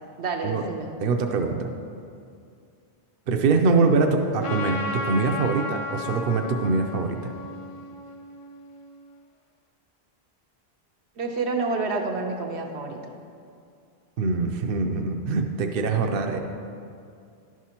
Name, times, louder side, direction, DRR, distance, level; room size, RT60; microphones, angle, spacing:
voice 1, 0.2-0.9 11.2-13.0, right 3 dB, 85° right, 2 dB, 1.0 m, -28 dB
voice 2, 1.0-1.7 3.3-7.3 14.2-16.4, right 4 dB, 65° right, 4 dB, 0.7 m, -23 dB
Trumpet, 4.4-9.1, left 2 dB, 50° left, 0.4 m, -34 dB
11.0 x 6.1 x 2.9 m, 2.4 s
omnidirectional pair, 1.1 m